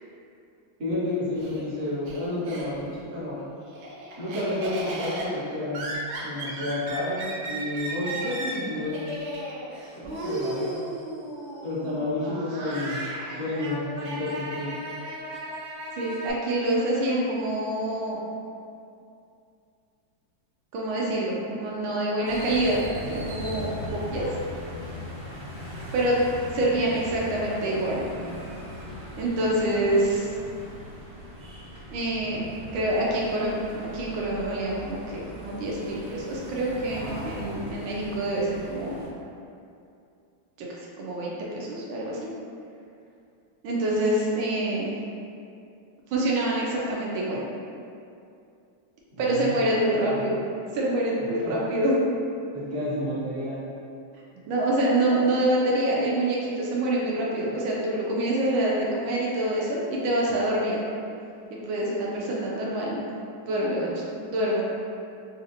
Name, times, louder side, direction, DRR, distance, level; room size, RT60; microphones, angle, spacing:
voice 1, 0.8-3.4 4.2-5.8 6.2-9.0 9.9-10.7 11.6-13.0 13.3-14.7 49.1-49.5 49.9-50.3 51.2-51.5 52.5-53.7, left 1 dB, 45° right, -10 dB, 1.3 m, -30 dB
Laughter, 0.9-3.0 3.4-16.3, right 1 dB, 70° right, 1.2 m, -35 dB
voice 2, 16.0-18.2 20.7-24.3 25.9-26.2 26.5-28.1 29.1-30.3 31.9-32.4 32.7-39.0 40.6-42.2 43.6-44.9 46.1-47.4 49.2-50.4 50.7-52.0 54.5-60.8 61.5-63.0 63.4-64.6, right 1 dB, 85° right, -4 dB, 1.4 m, -26 dB
sound 1, 22.2-39.1, equal, 20° right, 0.3 m, -39 dB
4.9 x 2.5 x 2.7 m, 2.5 s
omnidirectional pair, 2.2 m